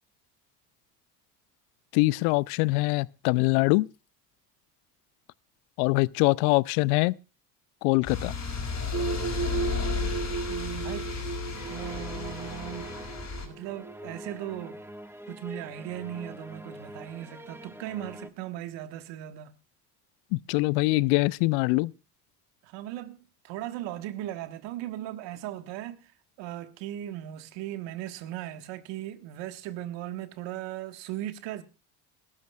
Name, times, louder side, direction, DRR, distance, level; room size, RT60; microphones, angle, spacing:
voice 1, 1.9-3.9 5.8-7.2 7.8-8.3 20.3-21.9, left 23 dB, 75° left, 0.6 m, -23 dB
sound 1, 8.0-13.5, left 5 dB, 35° left, 5.2 m, -33 dB
sound 2, 8.9-14.3, right 5 dB, 30° right, 0.8 m, -35 dB
voice 2, 10.4-11.1 11.7-13.0 13.4-14.8 15.3-19.5 22.6-31.6, right 13 dB, 70° right, 1.5 m, -38 dB
sound 3, 11.5-18.3, equal, 5° right, 1.3 m, -44 dB
21.5 x 12.5 x 2.3 m
hypercardioid pair, 75°, 46 cm